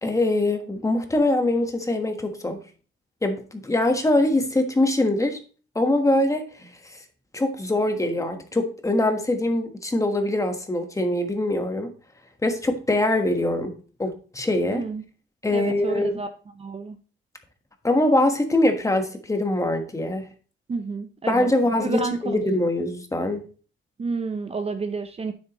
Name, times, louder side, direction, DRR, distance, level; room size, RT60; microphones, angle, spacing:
voice 1, 0.0-2.6 3.2-5.4 5.7-6.7 7.3-11.9 12.4-13.7 14.0-14.8 15.4-16.1 17.8-20.3 21.3-23.4, left 1 dB, 15° left, 6 dB, 1.3 m, -23 dB
voice 2, 14.7-15.0 15.5-16.3 16.6-17.0 20.7-21.5 21.8-22.4 24.0-25.3, right 4 dB, 30° right, 8 dB, 0.7 m, -30 dB
9.2 x 7.9 x 3.0 m, 0.39 s
cardioid pair, 125°, 21 cm